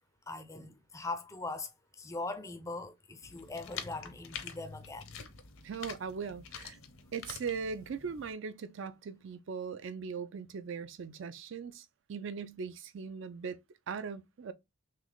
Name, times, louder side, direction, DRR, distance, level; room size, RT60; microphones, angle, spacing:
voice 1, 0.3-1.7 2.0-5.2, left 3 dB, 15° left, 0.4 m, -41 dB
sound 1, 3.2-8.3, left 7 dB, 75° left, 0.6 m, -47 dB
voice 2, 5.6-6.8 7.1-13.6 13.9-14.5, right 5 dB, 60° right, 0.4 m, -39 dB
3.3 x 3.1 x 3.8 m
head